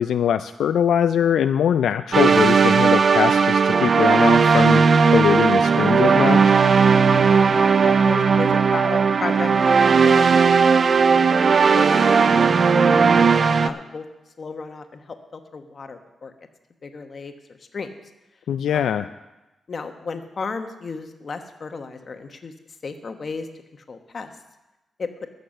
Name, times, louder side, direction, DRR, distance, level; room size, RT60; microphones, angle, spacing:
voice 1, 0.0-6.6 18.5-19.1, left 9 dB, 85° left, 10 dB, 0.3 m, -22 dB
sound 1, 2.1-13.7, right 5 dB, 50° right, 0.5 m, -16 dB
voice 2, 7.1-10.5 11.1-11.3 11.7-14.0 14.4-16.3 16.8-17.9 18.7-19.1 19.7-22.5 22.8-23.5 23.7-24.3 25.0-25.1, left 4 dB, 45° left, 7 dB, 1.2 m, -34 dB
14.5 x 6.7 x 6.5 m, 1.0 s
cardioid pair, 105°, 0 cm